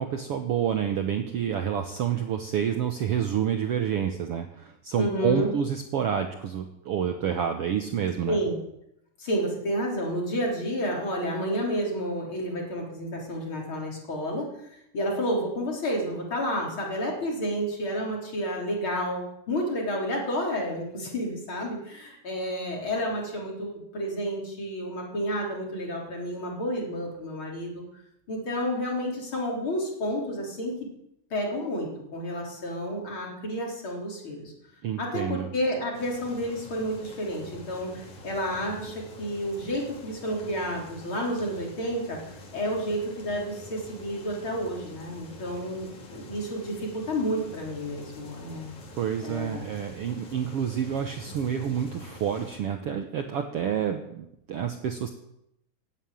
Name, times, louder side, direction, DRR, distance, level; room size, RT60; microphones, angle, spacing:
voice 1, 0.0-8.4 34.8-35.5 48.9-55.1, right 8 dB, 85° right, 5 dB, 1.3 m, -28 dB
voice 2, 4.9-5.5 8.3-8.6 9.2-27.8 28.3-30.7 31.3-34.5 35.0-42.2 42.5-48.7 49.2-49.6, equal, 35° left, -1 dB, 4.5 m, -30 dB
sound 1, 35.9-52.6, left 1 dB, 55° left, 3.9 m, -46 dB
17.0 x 9.0 x 9.1 m, 0.81 s
omnidirectional pair, 4.2 m